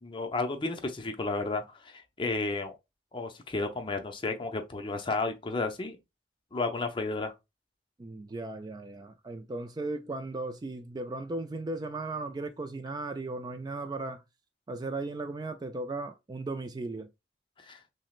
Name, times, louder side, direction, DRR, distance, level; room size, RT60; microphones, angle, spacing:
voice 1, 0.0-2.7 3.1-6.0 6.5-7.3 17.6-17.8, left 3 dB, 30° left, 0.6 m, -32 dB
voice 2, 8.0-14.2 14.7-17.1, right 2 dB, 25° right, 0.3 m, -36 dB
6.0 x 2.1 x 2.4 m
head